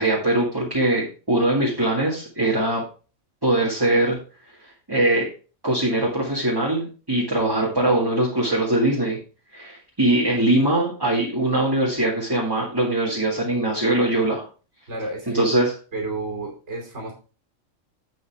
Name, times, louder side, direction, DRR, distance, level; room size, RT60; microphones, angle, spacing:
voice 1, 0.0-2.8 3.4-4.2 4.9-5.3 5.6-9.2 9.5-14.4 15.3-15.7, right 1 dB, 15° right, -5 dB, 2.0 m, -21 dB
voice 2, 14.9-15.4 15.9-17.1, right 2 dB, 55° right, 0 dB, 3.4 m, -31 dB
8.3 x 7.6 x 3.4 m, 0.35 s
omnidirectional pair, 1.4 m